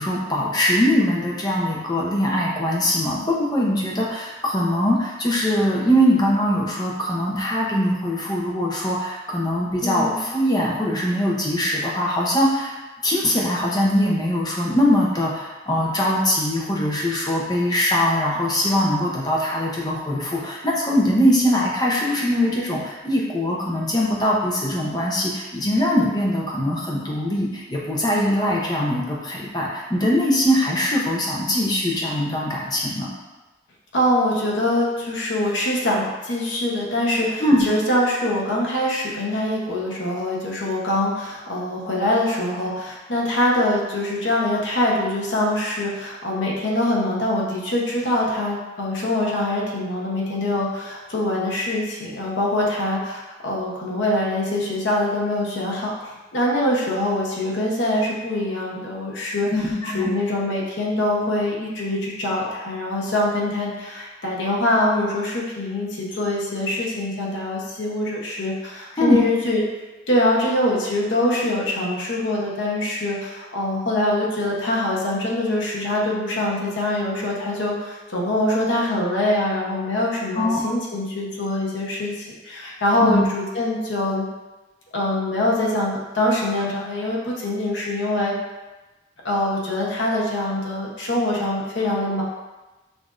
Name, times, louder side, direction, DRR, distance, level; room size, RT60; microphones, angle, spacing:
voice 1, 0.0-12.7 13.0-33.1 37.4-37.7 59.5-60.1 69.0-69.2 80.3-80.6 83.0-83.2, equal, 20° left, -3 dB, 0.6 m, -22 dB
voice 2, 9.8-10.2 33.9-55.9 56.3-69.6 70.1-84.2 84.9-88.3 89.2-92.2, left 1 dB, 80° left, -4 dB, 0.9 m, -24 dB
6.0 x 2.6 x 2.5 m, 1.1 s
head